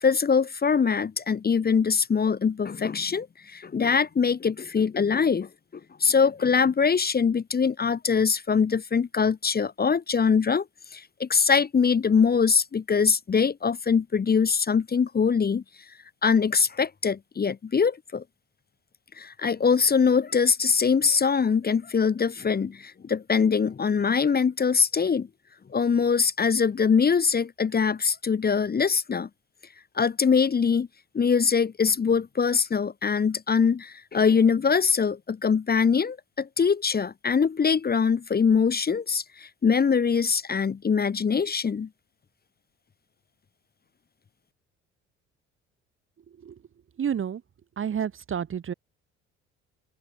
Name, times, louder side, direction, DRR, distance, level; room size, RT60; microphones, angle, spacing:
voice 1, 0.0-5.5 6.0-10.6 10.9-15.6 16.2-18.2 19.2-25.3 25.7-29.3 29.9-30.9 31.1-41.9, left 6 dB, 25° left, 1.1 m, -23 dB
voice 2, 46.3-46.6 47.0-47.4 47.8-48.7, right 8 dB, 35° right, 1.3 m, -30 dB
open air
figure-of-eight pair, 50°, 36 cm